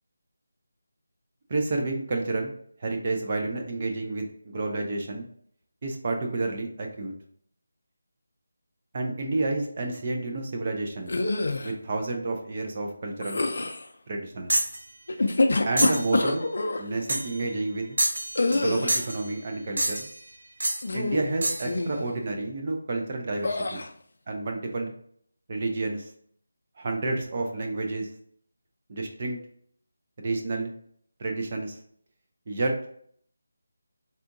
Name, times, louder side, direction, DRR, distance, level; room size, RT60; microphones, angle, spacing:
voice 1, 1.5-2.5 2.8-5.3 5.8-7.1 8.9-11.1 11.6-13.4 14.1-14.5 15.6-16.5 16.8-18.0 18.5-20.1 20.9-23.8 24.3-24.9 25.5-26.1 26.8-28.1 28.9-29.4 30.2-30.7 31.2-31.8 32.5-32.7, right 2 dB, 25° right, 2 dB, 0.4 m, -30 dB
sound 1, 11.1-11.7 13.2-13.8 15.1-16.8 18.3-19.1 20.8-21.3 21.6-22.0 23.4-23.9, left 2 dB, 50° left, 0.4 m, -26 dB
sound 2, 14.5-14.8 15.8-16.1 17.1-17.4 18.0-18.6 18.9-19.2 19.8-20.2 20.6-20.8 21.4-21.7, right 1 dB, 60° right, 0.7 m, -27 dB
3.5 x 2.7 x 2.5 m, 0.62 s
figure-of-eight pair, 180°, 0 cm